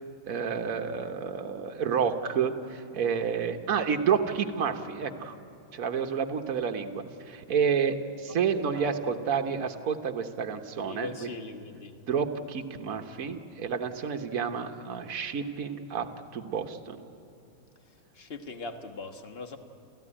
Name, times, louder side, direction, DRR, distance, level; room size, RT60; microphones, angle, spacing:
voice 1, 0.2-5.4 5.7-11.3 12.1-16.1 16.3-17.0, right 6 dB, 50° right, 5 dB, 1.4 m, -30 dB
voice 2, 10.8-11.9 18.1-19.6, left 3 dB, 35° left, 6 dB, 1.3 m, -40 dB
29.5 x 14.5 x 10.0 m, 2.6 s
omnidirectional pair, 2.2 m